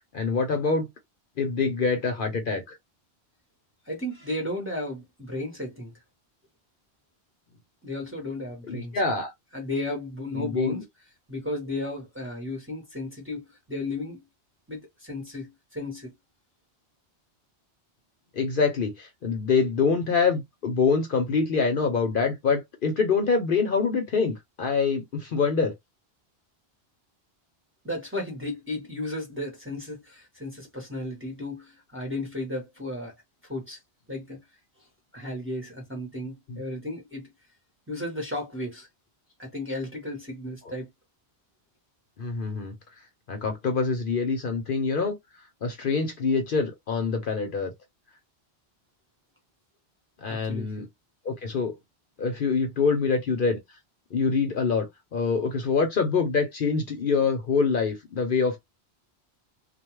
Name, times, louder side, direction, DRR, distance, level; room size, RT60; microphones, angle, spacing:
voice 1, 0.1-0.9 1.4-2.8 8.6-9.3 10.3-10.8 18.3-25.7 36.5-36.6 40.6-40.7 42.2-42.7 43.3-45.2 45.6-47.7 50.2-50.9 51.2-51.7 52.2-53.6 54.1-58.6, left 5 dB, 55° left, 0.8 m, -25 dB
voice 2, 3.8-5.9 7.8-9.0 9.5-10.8 11.3-14.2 14.7-16.1 27.8-33.1 33.4-33.8 34.1-34.4 35.1-37.3 37.9-38.9 39.4-40.9 50.3-50.8, left 1 dB, 10° right, 0.9 m, -34 dB
2.3 x 2.2 x 3.0 m
omnidirectional pair, 1.1 m